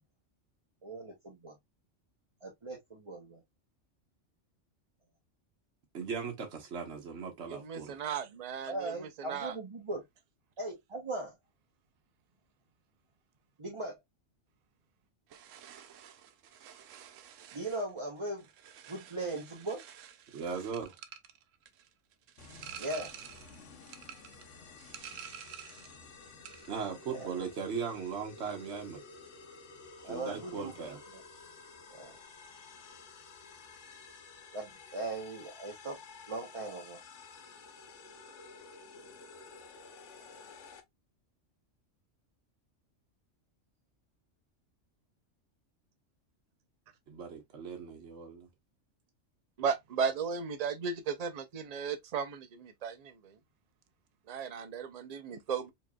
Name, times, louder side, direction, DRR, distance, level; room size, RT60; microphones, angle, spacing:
voice 1, 0.8-1.5 2.4-3.4 8.7-10.0 10.6-11.4 13.6-14.0 17.5-18.5 18.9-19.8 22.8-23.1 27.1-27.3 30.0-30.7 31.1-31.2 31.9-32.2 34.5-36.0 36.3-37.0, right 2 dB, 30° right, 0.9 m, -39 dB
voice 2, 5.9-8.0 20.3-20.9 26.7-29.0 30.0-31.0 47.1-48.5, right 6 dB, 65° right, 1.2 m, -38 dB
voice 3, 7.5-9.5 49.6-53.3 54.3-55.7, right 6 dB, 45° right, 0.5 m, -35 dB
sound 1, 15.3-26.0 26.3-26.8, right 9 dB, 85° right, 1.0 m, -50 dB
sound 2, 22.4-40.8, left 4 dB, 70° left, 1.1 m, -52 dB
4.4 x 3.0 x 2.2 m
omnidirectional pair, 1.3 m